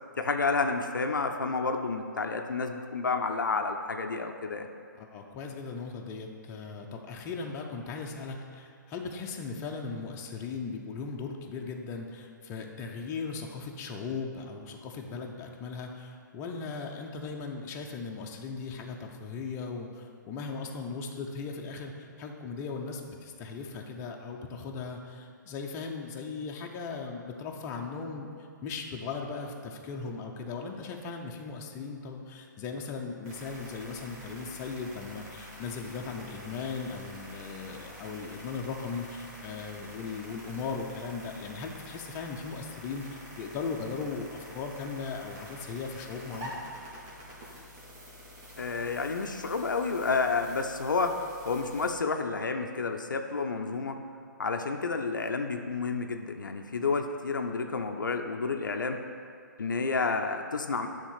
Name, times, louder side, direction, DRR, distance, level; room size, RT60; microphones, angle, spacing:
voice 1, 0.2-4.7 48.6-51.2 51.4-54.0 54.4-59.0 59.6-60.9, left 4 dB, 75° left, 5 dB, 0.6 m, -30 dB
voice 2, 5.0-28.3 28.6-46.5, left 4 dB, 25° left, 1 dB, 0.8 m, -38 dB
sound 1, 33.2-51.9, equal, 30° right, 1.8 m, -47 dB
9.8 x 3.6 x 5.7 m, 2.2 s
figure-of-eight pair, 125°, 10 cm